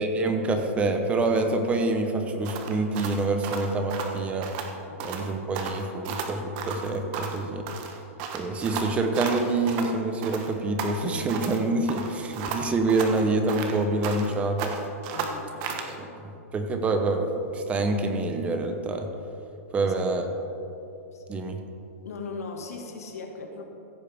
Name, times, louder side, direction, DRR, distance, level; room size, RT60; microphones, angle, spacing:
voice 1, 0.0-4.5 5.0-7.7 8.3-14.8 15.9-19.1 19.7-20.2 21.3-21.6, right 2 dB, 15° right, 5 dB, 0.8 m, -26 dB
sound 1, 2.4-4.7 5.0-5.3 5.5-7.4 7.7-9.9 10.2-11.6 11.9-14.3 14.6-15.9, right 6 dB, 40° right, 1.1 m, -34 dB
voice 2, 15.1-16.0 19.7-19.9 20.3-20.4 21.1-21.2 22.1-23.7, left 4 dB, 85° left, 2 dB, 1.8 m, -39 dB
15.5 x 8.6 x 3.5 m, 2.9 s
hypercardioid pair, 150°, 8 cm